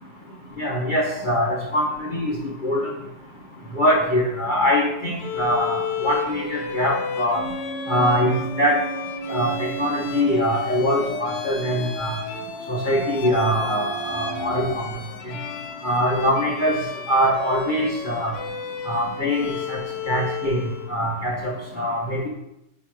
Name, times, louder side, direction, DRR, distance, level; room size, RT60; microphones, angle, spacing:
voice 1, 0.6-2.4 2.6-2.9 3.7-7.4 7.9-8.8 9.3-12.1 12.7-14.8 15.3-15.4 15.8-16.7 17.1-18.3 18.9-19.8 20.1-20.6 20.9-22.3, equal, 60° left, -4 dB, 0.5 m, -23 dB
Bowed string instrument, 5.2-21.0, left 6 dB, 90° left, 1.6 m, -34 dB
sound 1, 7.3-14.8, right 2 dB, 50° right, 0.3 m, -33 dB
8.7 x 3.3 x 4.6 m, 0.85 s
omnidirectional pair, 2.4 m